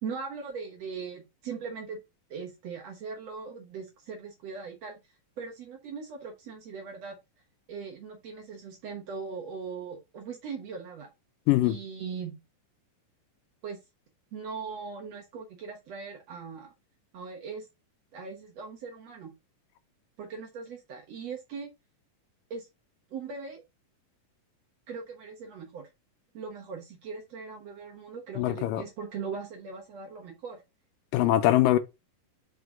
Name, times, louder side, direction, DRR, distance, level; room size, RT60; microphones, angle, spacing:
voice 1, 0.0-2.0 2.3-5.0 5.4-7.2 7.7-11.1 11.6-12.4 13.6-13.8 14.3-16.7 17.1-17.7 18.1-19.3 20.2-21.7 22.5-22.7 23.1-23.6 24.9-25.9 26.3-30.6, right 5 dB, 60° right, 1.9 m, -40 dB
voice 2, 28.4-28.8 31.1-31.8, left 15 dB, 80° left, 2.2 m, -22 dB
5.6 x 5.0 x 3.6 m
omnidirectional pair, 4.0 m